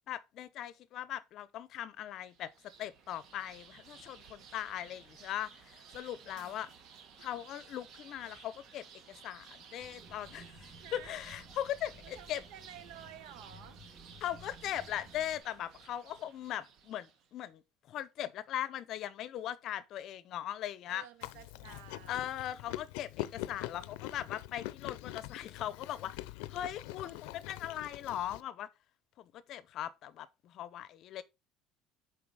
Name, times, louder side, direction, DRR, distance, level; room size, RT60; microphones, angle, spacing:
voice 1, 0.1-2.5 2.8-6.7 7.2-12.4 14.2-17.6 17.9-21.0 22.1-28.7 29.2-31.2, left 11 dB, 45° left, 0.6 m, -40 dB
sound 1, 2.2-17.3, right 6 dB, 50° right, 1.6 m, -56 dB
voice 2, 6.2-6.7 10.8-11.2 12.0-13.8 20.9-22.2, right 10 dB, 80° right, 1.2 m, -52 dB
sound 2, 9.8-15.4, right 1 dB, 20° right, 1.8 m, -55 dB
Chewing mastication, 21.2-28.4, left 16 dB, 90° left, 0.5 m, -44 dB
7.1 x 4.7 x 4.7 m
cardioid pair, 160°, 0 cm